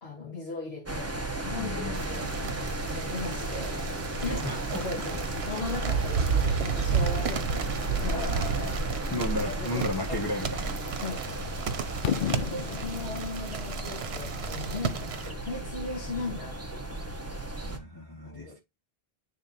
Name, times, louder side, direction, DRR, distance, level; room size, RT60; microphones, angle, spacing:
voice 1, 0.0-2.5 2.8-3.8 4.2-5.2 5.5-8.8 9.1-10.2 11.0-11.3 12.2-17.0 18.2-18.6, left 3 dB, 75° left, 1.8 m, -38 dB
sound 1, 0.9-17.8, right 1 dB, 15° right, 0.9 m, -34 dB
voice 2, 1.5-1.9 4.3-4.8 8.1-8.7 9.1-10.7 17.6-18.6, left 1 dB, 20° left, 1.3 m, -34 dB
sound 2, 1.9-15.3, right 7 dB, 85° right, 1.1 m, -33 dB
Fireworks, 12.0-15.9, left 9 dB, 60° left, 0.6 m, -35 dB
10.5 x 3.6 x 2.6 m
omnidirectional pair, 1.0 m